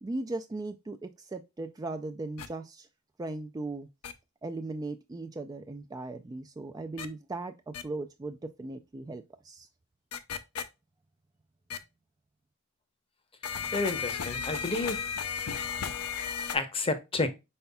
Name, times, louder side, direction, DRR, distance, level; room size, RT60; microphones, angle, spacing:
voice 1, 0.0-2.9 3.2-3.9 4.4-9.7, right 2 dB, 15° right, 0.3 m, -38 dB
sound 1, 2.4-2.5 4.0-4.1 7.0-7.1 7.7-7.8 10.1-10.6 11.7-11.8 13.4-16.6, left 6 dB, 85° left, 0.6 m, -34 dB
voice 2, 13.7-15.1 15.8-15.9 16.5-17.3, left 3 dB, 25° left, 0.8 m, -30 dB
5.5 x 4.4 x 2.2 m
head